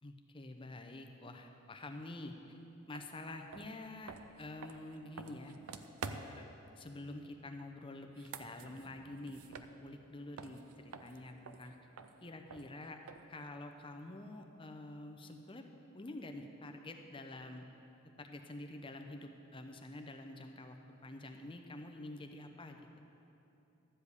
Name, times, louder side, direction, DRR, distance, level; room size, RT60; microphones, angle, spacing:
voice 1, 0.0-2.6 2.9-5.5 6.1-6.5 6.7-9.4 9.8-11.7 12.2-13.0 13.3-15.6 15.9-17.7 18.2-20.8 21.0-23.0, left 2 dB, 25° left, 5 dB, 0.6 m, -48 dB
sound 1, 2.9-3.1 3.5-6.5 8.0-10.1 10.4-13.4, right 5 dB, 85° right, 0.5 m, -49 dB
12.5 x 5.1 x 8.2 m, 2.9 s
head